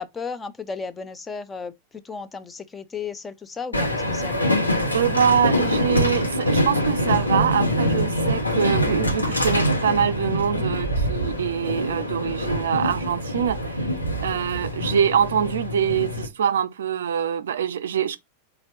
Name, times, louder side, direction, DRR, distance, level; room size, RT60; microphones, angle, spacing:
voice 1, 0.0-4.6, left 5 dB, 15° left, 0.5 m, -34 dB
Train, 3.7-16.3, left 1 dB, 85° left, 1.2 m, -24 dB
voice 2, 4.9-14.0 14.2-18.2, right 8 dB, 65° right, 0.4 m, -24 dB
4.3 x 3.9 x 2.8 m
figure-of-eight pair, 90°, 0 cm